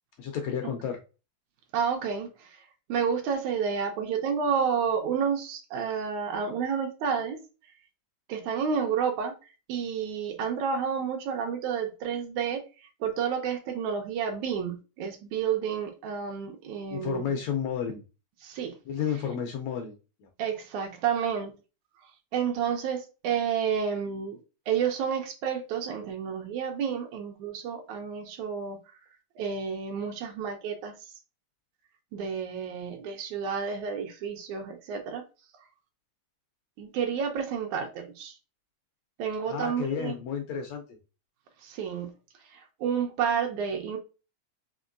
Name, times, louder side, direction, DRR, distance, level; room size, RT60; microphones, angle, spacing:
voice 1, 0.2-1.0 16.9-18.0 18.9-20.3 39.5-40.8, left 7 dB, 80° left, 1.6 m, -32 dB
voice 2, 1.7-2.6 2.9-7.4 8.3-9.4 9.7-17.3 18.4-18.7 20.4-21.6 22.3-24.4 24.7-28.8 29.4-31.1 32.1-35.2 36.8-38.4 39.2-40.2 41.6-42.1 42.5-44.0, right 7 dB, 80° right, 1.9 m, -30 dB
5.2 x 2.9 x 2.5 m
omnidirectional pair, 3.6 m